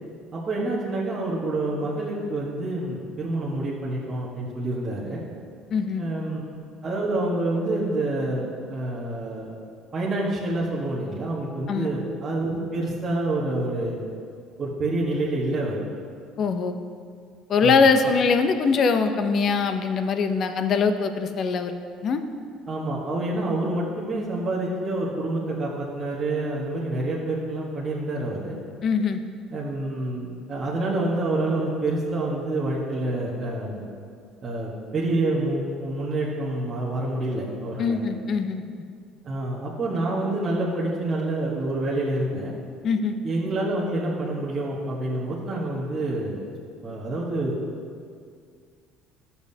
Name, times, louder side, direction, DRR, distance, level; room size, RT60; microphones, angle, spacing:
voice 1, 0.3-5.2 6.0-6.4 6.8-9.6 9.9-14.0 14.6-15.8 17.6-17.8 22.7-28.6 29.5-33.9 34.4-38.0 39.2-42.5 43.2-46.4 46.8-47.6, right 2 dB, 25° right, -7 dB, 1.2 m, -27 dB
voice 2, 5.7-6.0 11.7-11.9 16.4-16.8 17.5-21.7 22.0-22.2 28.8-29.2 37.8-38.7 42.8-43.1, left 5 dB, 40° left, 8 dB, 0.5 m, -22 dB
13.5 x 7.0 x 2.7 m, 2.2 s
cardioid pair, 160°, 0 cm